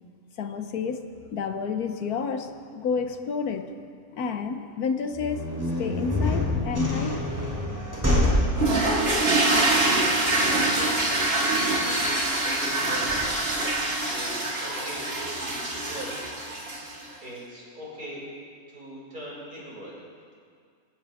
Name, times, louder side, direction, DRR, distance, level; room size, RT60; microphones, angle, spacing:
voice 1, 0.4-3.8 4.1-5.5 5.8-7.2, left 5 dB, 75° left, 8 dB, 1.4 m, -30 dB
sound 1, 5.1-13.8, left 1 dB, 10° right, 3.1 m, -28 dB
sound 2, 8.6-17.0, right 2 dB, 40° right, 2.4 m, -25 dB
voice 2, 9.9-11.1 11.5-13.4 14.1-16.1 16.7-16.8 17.2-18.2 18.7-20.0, equal, 85° right, -6 dB, 5.7 m, -41 dB
25.0 x 14.5 x 3.5 m, 2.2 s
omnidirectional pair, 1.6 m